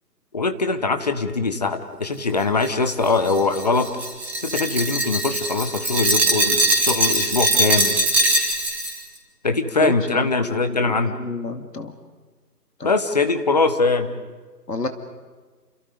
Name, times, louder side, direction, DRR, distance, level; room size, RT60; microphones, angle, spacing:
voice 1, 0.3-3.9 4.4-8.0 9.4-11.1 12.8-14.1, left 3 dB, 25° left, 8 dB, 1.1 m, -22 dB
Glass, 2.6-9.0, right 1 dB, 5° right, 1.6 m, -21 dB
voice 2, 9.8-12.0 12.8-12.9 14.7-14.9, left 3 dB, 75° left, 7 dB, 2.5 m, -30 dB
29.0 x 29.0 x 5.1 m, 1.4 s
figure-of-eight pair, 150°, 50 cm